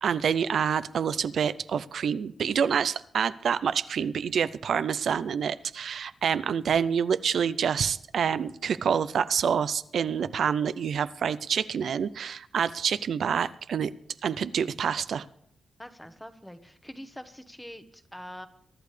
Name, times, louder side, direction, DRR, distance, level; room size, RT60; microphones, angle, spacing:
voice 1, 0.0-13.9 14.2-15.2, right 7 dB, 75° right, 14 dB, 0.4 m, -27 dB
voice 2, 15.8-18.5, equal, 5° left, 10 dB, 1.0 m, -44 dB
23.0 x 11.5 x 3.3 m, 0.69 s
wide cardioid pair, 135°, 0 cm